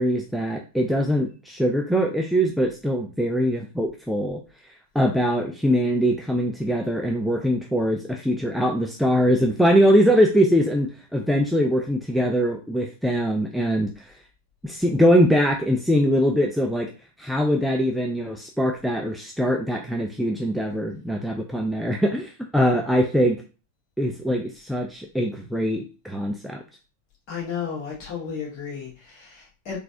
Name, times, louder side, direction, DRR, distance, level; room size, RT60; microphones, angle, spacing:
voice 1, 0.0-14.1 14.6-16.9 17.2-23.4 24.0-26.6, equal, ahead, 1 dB, 0.3 m, -22 dB
voice 2, 27.3-29.8, left 7 dB, 40° left, -5 dB, 1.3 m, -33 dB
3.8 x 2.4 x 2.7 m, 0.34 s
figure-of-eight pair, 90°, 0 cm